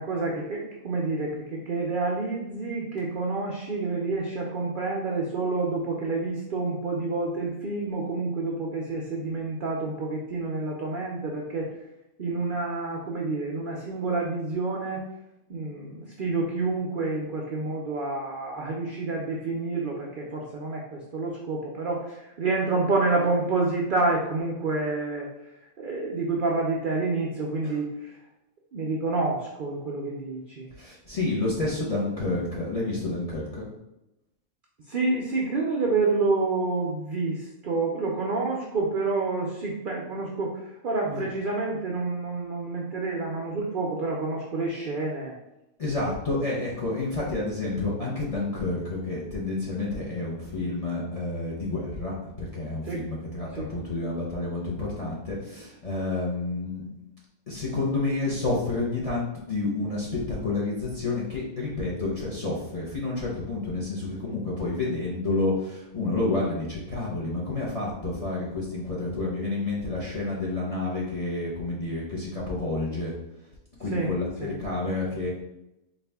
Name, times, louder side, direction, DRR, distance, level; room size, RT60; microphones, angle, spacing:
voice 1, 0.0-11.7 12.2-15.0 15.5-25.3 25.8-28.2 28.7-30.7 34.9-45.4 52.8-53.0 53.5-53.7 73.9-74.1 74.4-74.5, right 3 dB, 75° right, -1 dB, 0.4 m, -28 dB
voice 2, 30.8-33.7 41.1-41.3 45.8-56.8 57.5-73.1 73.8-75.3, left 2 dB, 40° left, -5 dB, 0.5 m, -29 dB
4.1 x 2.4 x 3.4 m, 0.90 s
omnidirectional pair, 1.5 m